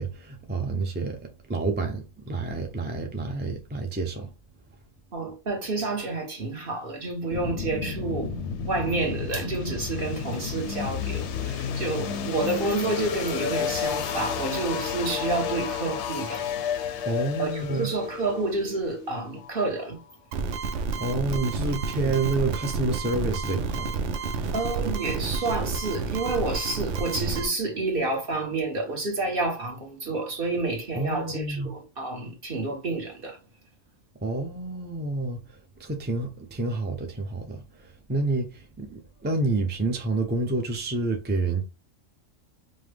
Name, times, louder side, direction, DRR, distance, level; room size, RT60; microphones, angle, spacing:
voice 1, 0.0-4.3 17.1-17.9 21.0-24.0 24.4-24.5 31.0-31.7 34.2-35.4 35.8-41.6, right 2 dB, 15° right, 0.4 m, -29 dB
voice 2, 5.1-8.4 8.7-16.5 17.4-20.0 24.5-33.4, right 3 dB, 45° right, 1.3 m, -29 dB
sound 1, 7.3-20.1, left 7 dB, 65° left, 0.8 m, -32 dB
sound 2, 20.3-27.5, right 4 dB, 70° right, 0.9 m, -30 dB
5.4 x 2.1 x 3.3 m
omnidirectional pair, 1.4 m